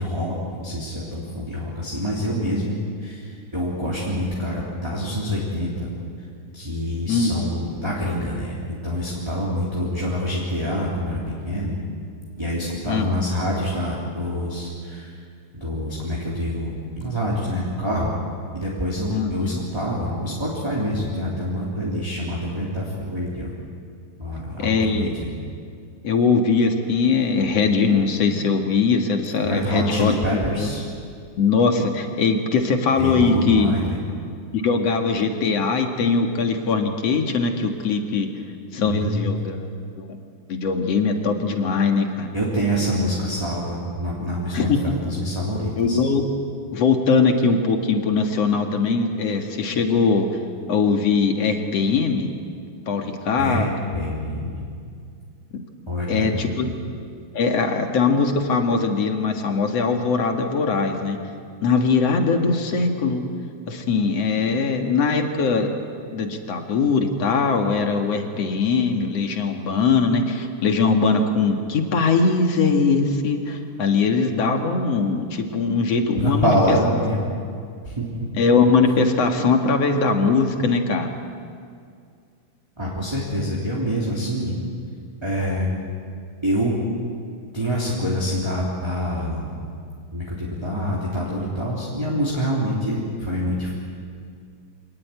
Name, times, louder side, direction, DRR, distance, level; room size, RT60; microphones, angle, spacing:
voice 1, 0.0-5.9 6.5-11.2 11.4-11.8 12.4-15.2 15.5-18.1 18.5-23.5 24.2-25.3 29.4-30.8 33.0-34.0 38.9-39.4 42.3-46.0 53.4-54.6 55.9-56.3 56.6-56.7 76.2-77.2 77.8-78.3 82.8-84.5 85.2-85.7 86.4-86.9 87.5-89.5 90.1-93.7, equal, 10° right, -5 dB, 3.3 m, -26 dB
voice 2, 7.1-7.6 12.9-13.3 19.1-19.6 24.6-25.1 26.0-30.1 30.6-30.7 31.4-33.7 34.5-38.3 38.7-39.6 40.0-40.2 40.5-42.3 44.5-44.8 45.8-46.2 46.7-50.3 50.7-52.3 52.9-53.7 56.1-56.7 57.3-61.2 61.6-63.2 63.7-65.7 66.1-76.8 78.3-81.1, left 4 dB, 55° left, 4 dB, 2.8 m, -21 dB
26.0 x 19.0 x 9.5 m, 2.3 s
omnidirectional pair, 3.5 m